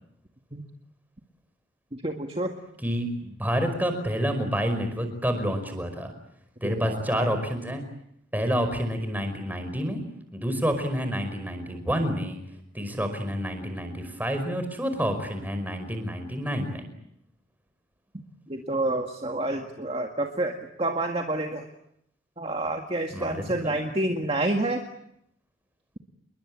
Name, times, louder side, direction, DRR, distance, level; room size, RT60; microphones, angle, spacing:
voice 1, 1.9-2.5 6.6-7.3 18.5-21.6 22.4-24.8, right 1 dB, 30° right, 3 dB, 2.0 m, -29 dB
voice 2, 2.8-6.1 6.6-7.8 8.3-10.0 10.3-12.4 12.7-16.9 23.1-23.7, equal, 10° right, 7 dB, 5.2 m, -28 dB
29.0 x 22.5 x 8.8 m, 0.75 s
head